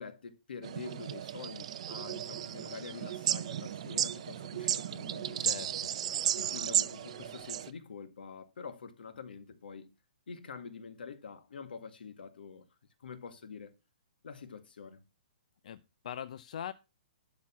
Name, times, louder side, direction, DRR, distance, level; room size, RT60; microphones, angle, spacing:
voice 1, 0.0-5.5 6.4-9.9 10.3-12.7 13.0-13.7 14.2-15.0, left 5 dB, 80° left, 1.9 m, -46 dB
sound 1, 0.6-7.7, right 10 dB, 40° right, 0.6 m, -34 dB
sound 2, 1.8-7.4, left 2 dB, 15° left, 2.4 m, -60 dB
voice 2, 5.4-5.7 15.6-16.7, left 9 dB, 45° left, 0.6 m, -41 dB
12.0 x 4.0 x 7.3 m
hypercardioid pair, 175°, 5 cm